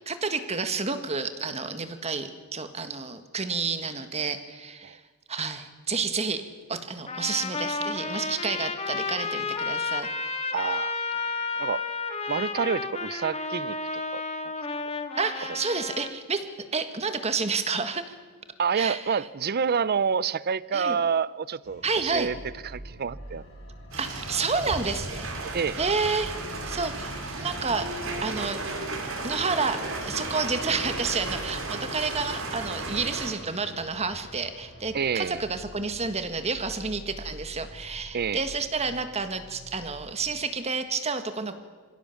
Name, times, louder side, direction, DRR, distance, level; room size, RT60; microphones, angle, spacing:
voice 1, 0.1-5.0 5.3-6.4 6.7-10.1 15.2-16.4 16.7-18.1 18.7-19.0 20.7-21.0 21.8-22.3 24.0-25.3 25.8-26.3 26.7-28.6 29.2-41.6, right 4 dB, 30° right, 9 dB, 1.6 m, -30 dB
Trumpet, 7.1-16.1, left 4 dB, 30° left, 1.5 m, -32 dB
voice 2, 10.5-11.8 12.3-13.8 14.1-14.2 18.6-22.4 22.6-23.4 25.1-25.8 34.9-35.4 38.1-38.4, right 6 dB, 45° right, 20 dB, 0.5 m, -28 dB
sound 1, 21.6-40.4, equal, 75° left, 6.0 m, -46 dB
sound 2, 23.9-33.3, right 2 dB, 65° right, 4.0 m, -34 dB
26.0 x 16.5 x 7.1 m, 1.5 s
head